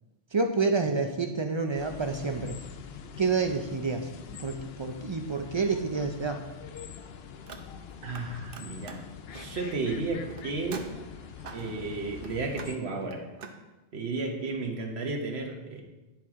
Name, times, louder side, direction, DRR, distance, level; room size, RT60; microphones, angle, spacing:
voice 1, 0.3-2.6 3.2-6.4, right 4 dB, 45° right, 5 dB, 0.3 m, -29 dB
sound 1, 1.8-12.8, left 7 dB, 75° left, 0.8 m, -44 dB
Car, 7.3-8.2 8.5-13.6, right 5 dB, 60° right, 0.8 m, -45 dB
voice 2, 8.0-9.0 9.3-10.9 11.5-13.3 13.9-15.8, right 3 dB, 80° right, 3 dB, 1.3 m, -33 dB
10.0 x 4.6 x 3.6 m, 1.1 s
omnidirectional pair, 1.1 m